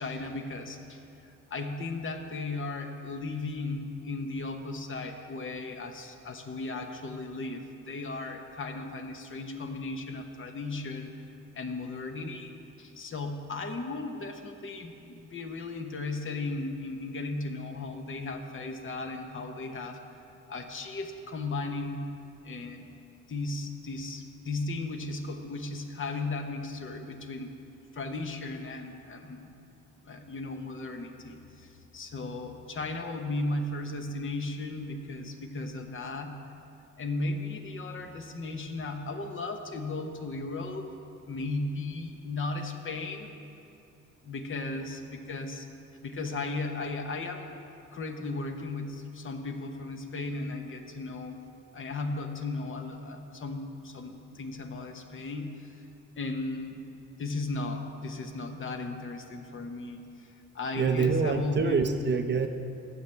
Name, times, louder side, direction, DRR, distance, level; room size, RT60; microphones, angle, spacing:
voice 1, 0.0-11.2 11.5-20.0 20.5-22.1 22.4-22.9 23.3-27.6 27.9-29.5 30.0-36.4 37.0-41.0 41.2-43.3 44.2-45.7 46.0-47.5 47.9-51.4 51.7-55.7 56.2-56.8 57.2-60.0 60.5-61.8, left 2 dB, 40° left, 5 dB, 0.9 m, -36 dB
voice 2, 60.7-62.5, right 5 dB, 35° right, 7 dB, 0.6 m, -26 dB
15.0 x 7.0 x 3.3 m, 2.7 s
cardioid pair, 90°, 30 cm